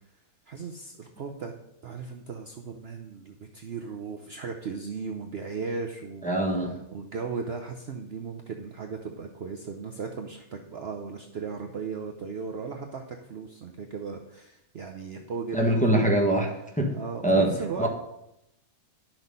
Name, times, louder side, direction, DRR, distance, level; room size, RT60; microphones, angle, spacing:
voice 1, 0.5-1.5 1.8-16.1 16.9-17.9, right 5 dB, 50° right, 3 dB, 0.8 m, -37 dB
voice 2, 6.2-6.7 15.5-16.5 16.8-17.0 17.2-17.5 17.8-17.9, right 1 dB, 5° left, 1 dB, 1.3 m, -23 dB
10.5 x 6.2 x 5.4 m, 0.83 s
omnidirectional pair, 1.5 m